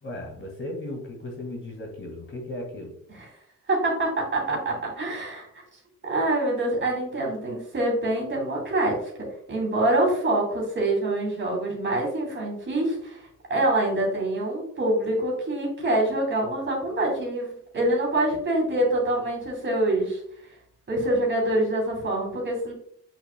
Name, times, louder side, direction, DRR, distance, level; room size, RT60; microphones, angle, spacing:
voice 1, 0.0-2.9, left 1 dB, 40° left, 1 dB, 2.0 m, -36 dB
voice 2, 3.7-5.5 6.0-9.1 9.5-13.2 13.5-20.2 20.9-22.7, right 1 dB, 40° right, -1 dB, 2.7 m, -25 dB
8.8 x 5.7 x 2.2 m, 0.67 s
wide cardioid pair, 170°, 31 cm